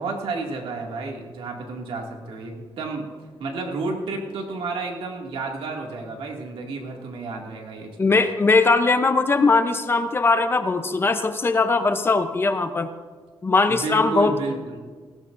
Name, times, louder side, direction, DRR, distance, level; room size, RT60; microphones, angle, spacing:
voice 1, 0.0-3.0 3.4-7.9 13.7-14.8, right 3 dB, 85° right, 0 dB, 2.3 m, -31 dB
voice 2, 8.0-12.9 13.4-14.3, left 3 dB, 25° left, 8 dB, 0.7 m, -20 dB
18.5 x 17.0 x 2.6 m, 1.5 s
wide cardioid pair, 145°, 9 cm